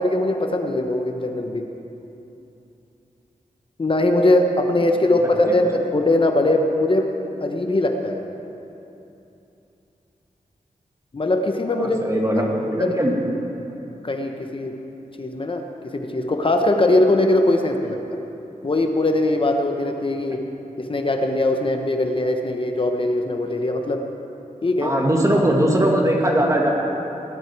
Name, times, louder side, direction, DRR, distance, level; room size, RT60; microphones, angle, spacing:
voice 1, 0.0-1.6 3.8-7.1 7.4-8.2 11.1-12.4 12.8-12.9 14.0-14.8 15.2-18.0 18.6-20.4 20.8-24.0 24.6-24.9, left 1 dB, 40° left, 4 dB, 1.0 m, -21 dB
voice 2, 11.8-13.1 24.8-26.7, right 1 dB, 20° right, -1 dB, 2.3 m, -20 dB
18.0 x 12.0 x 4.7 m, 2.9 s
wide cardioid pair, 80°, 14 cm